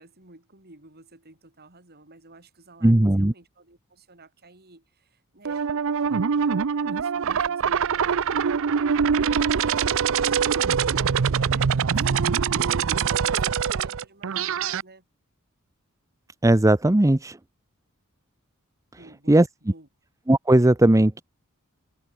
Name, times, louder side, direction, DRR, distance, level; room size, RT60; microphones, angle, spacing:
voice 1, 0.0-5.7 6.0-8.6 8.9-15.1 18.9-19.9, right 2 dB, 50° right, 6.1 m, -52 dB
voice 2, 2.8-3.3 16.4-17.4 19.3-19.5 20.3-21.2, right 1 dB, 15° right, 0.7 m, -17 dB
sound 1, 5.5-14.8, right 6 dB, 65° right, 0.6 m, -23 dB
head